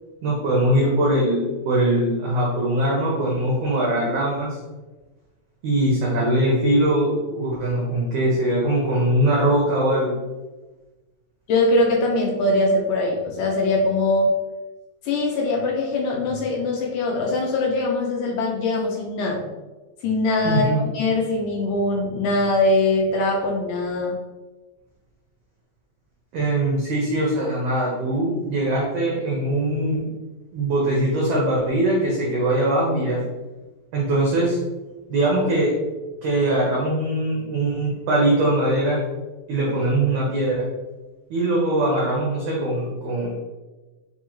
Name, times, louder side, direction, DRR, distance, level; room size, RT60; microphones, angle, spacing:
voice 1, 0.2-4.6 5.6-10.1 20.4-20.8 26.3-30.1 30.5-33.2 33.9-34.6 35.1-35.7 36.2-39.0 39.5-40.6 41.3-43.3, right 1 dB, 85° right, -4 dB, 1.4 m, -21 dB
voice 2, 11.5-14.3 15.1-19.4 20.0-24.2, left 2 dB, 80° left, -1 dB, 1.9 m, -22 dB
5.3 x 2.3 x 3.0 m, 1.2 s
omnidirectional pair, 3.8 m